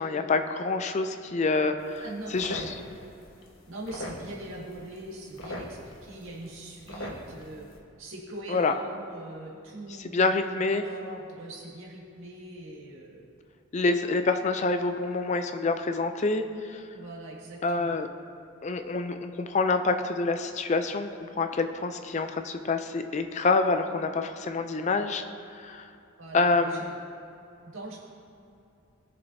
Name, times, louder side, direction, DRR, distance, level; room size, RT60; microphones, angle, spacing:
voice 1, 0.0-2.0 2.3-2.6 8.5-8.7 10.1-10.8 13.7-16.4 16.7-16.8 17.6-18.1 18.6-21.1 21.4-25.2 25.6-25.8 26.3-26.8, left 3 dB, 35° left, 8 dB, 0.4 m, -26 dB
sound 1, 1.8-7.8, left 1 dB, 90° left, 1.4 m, -43 dB
voice 2, 2.0-2.7 3.7-7.7 8.0-13.2 14.1-14.2 16.9-18.0 26.2-26.9 27.6-28.0, right 1 dB, 75° right, -4 dB, 2.0 m, -42 dB
18.5 x 6.9 x 2.7 m, 2.6 s
head